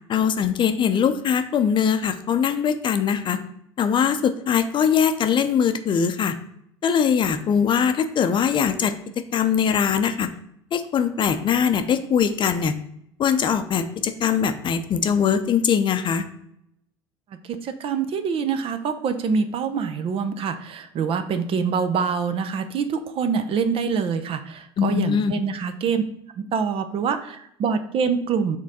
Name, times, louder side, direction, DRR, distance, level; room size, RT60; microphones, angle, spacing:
voice 1, 0.1-3.4 3.8-6.3 6.8-8.9 9.3-10.3 10.7-12.7 13.2-16.2 24.8-25.3, left 7 dB, 35° left, 9 dB, 0.6 m, -21 dB
voice 2, 17.5-26.0 26.4-28.6, right 6 dB, 45° right, 9 dB, 0.7 m, -25 dB
6.2 x 3.8 x 4.1 m, 0.74 s
hypercardioid pair, 70°, 13 cm